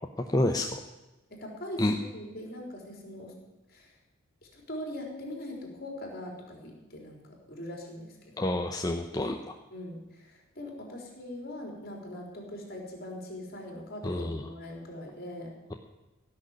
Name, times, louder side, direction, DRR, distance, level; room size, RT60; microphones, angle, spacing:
voice 1, 0.3-0.8 1.8-1.9 8.4-9.6 14.0-14.5, left 1 dB, 20° left, 3 dB, 0.7 m, -28 dB
voice 2, 1.3-3.3 3.7-3.9 4.5-8.2 9.7-15.5, left 1 dB, 45° left, 0 dB, 3.9 m, -41 dB
16.5 x 6.7 x 9.6 m, 1.1 s
head